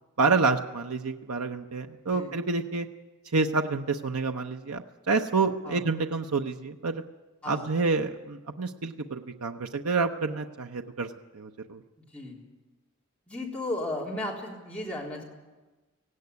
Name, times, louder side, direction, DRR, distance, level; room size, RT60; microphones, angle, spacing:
voice 1, 0.2-2.9 3.3-7.0 7.5-11.8, right 4 dB, 85° right, 5 dB, 0.8 m, -28 dB
voice 2, 2.0-2.4 5.6-5.8 7.4-7.7 12.1-12.5 13.3-15.2, left 1 dB, 5° left, -5 dB, 3.8 m, -35 dB
17.5 x 16.5 x 9.5 m, 1.2 s
head